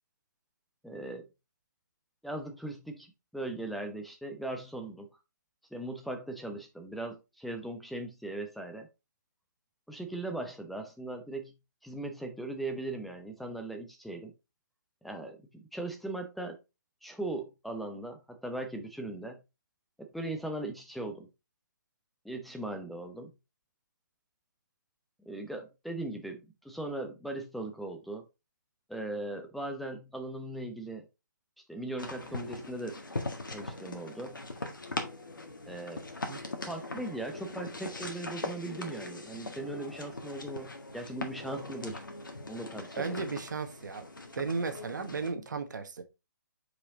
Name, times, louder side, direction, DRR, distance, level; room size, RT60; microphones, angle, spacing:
voice 1, 0.8-1.3 2.2-5.1 5.7-8.9 9.9-11.5 11.8-14.3 15.0-16.6 17.0-19.4 20.0-21.3 22.2-23.3 25.3-28.2 28.9-31.0 31.7-33.0 33.5-34.4 35.7-36.0 36.7-42.0 42.5-43.2, right 2 dB, ahead, 0.6 m, -39 dB
sound 1, 32.0-45.3, left 2 dB, 90° left, 1.7 m, -41 dB
voice 2, 43.0-44.1 44.4-46.0, right 4 dB, 65° right, 1.2 m, -35 dB
5.1 x 4.9 x 3.7 m
figure-of-eight pair, 140°, 10 cm